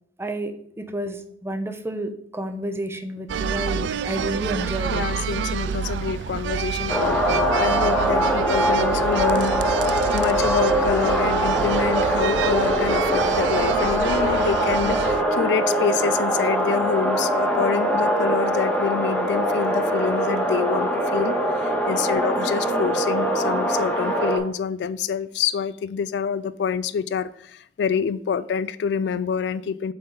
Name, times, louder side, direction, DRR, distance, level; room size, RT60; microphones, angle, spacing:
voice 1, 0.2-5.0 5.7-5.8 22.6-22.9, right 1 dB, 15° right, 8 dB, 0.6 m, -30 dB
sound 1, 3.3-15.2, right 7 dB, 90° right, 0.3 m, -28 dB
voice 2, 4.9-9.6 9.8-29.9, left 6 dB, 70° left, 16 dB, 0.3 m, -27 dB
sound 2, 6.9-24.4, equal, 5° left, 1.0 m, -22 dB
7.7 x 3.9 x 3.8 m, 0.64 s
head